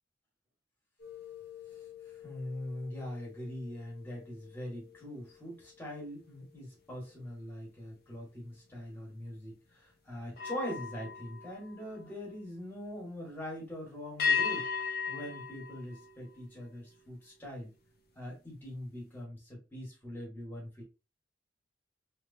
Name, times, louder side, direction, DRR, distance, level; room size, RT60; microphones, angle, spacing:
sound 1, 1.0-6.6 7.0-7.3 10.3-12.5 14.2-16.8, left 6 dB, 55° left, 0.8 m, -38 dB
voice 1, 1.7-14.7 15.1-17.7 18.1-20.8, left 1 dB, 10° left, -4 dB, 1.6 m, -42 dB
3.2 x 3.1 x 2.7 m, 0.30 s
head